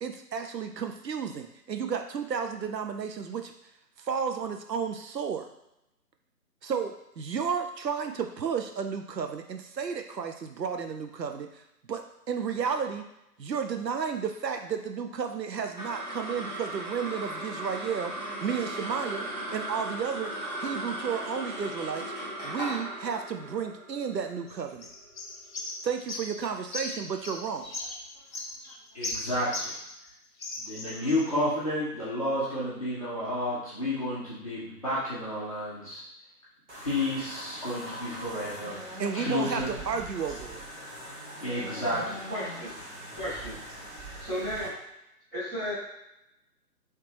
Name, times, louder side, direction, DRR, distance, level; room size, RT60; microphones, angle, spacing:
voice 1, 0.0-3.5 4.0-5.5 6.6-13.1 13.4-18.1 18.4-19.3 19.5-22.0 22.4-24.9 25.8-27.8 39.0-40.6, right 6 dB, 90° right, 6 dB, 0.6 m, -32 dB
sound 1, 15.5-26.1, right 1 dB, 25° right, 0.6 m, -37 dB
sound 2, 24.5-30.1 30.4-31.3, left 2 dB, 55° left, 0.8 m, -38 dB
voice 2, 28.9-29.7 30.6-36.0 36.8-38.8 39.1-39.7 41.4-42.2, left 1 dB, 20° left, -10 dB, 0.7 m, -31 dB
sound 3, 36.7-44.7, equal, 45° right, 1.2 m, -42 dB
voice 3, 42.3-42.7 43.2-43.6 44.2-44.7 45.3-45.7, equal, 10° right, -13 dB, 1.1 m, -33 dB
3.3 x 3.2 x 2.8 m, 0.85 s
figure-of-eight pair, 145°, 48 cm